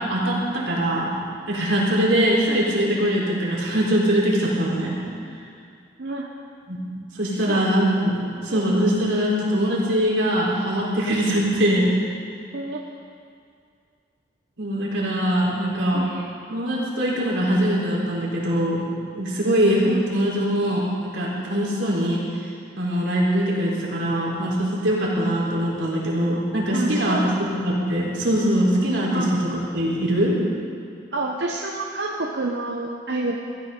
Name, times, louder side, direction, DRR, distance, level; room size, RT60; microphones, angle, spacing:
voice 1, 0.1-1.1 1.5-5.0 6.7-6.8 7.1-11.8 14.6-16.0 16.5-18.9 19.2-22.5 22.7-27.2 27.6-30.3, equal, 90° right, -5 dB, 4.2 m, -22 dB
voice 2, 6.0-6.3 7.3-7.7 8.5-8.6 12.5-12.8 15.9-16.3 19.8-20.1 26.7-27.4 29.1-29.6 31.1-33.3, right 2 dB, 65° right, -1 dB, 1.1 m, -29 dB
20.0 x 14.5 x 4.0 m, 2.3 s
head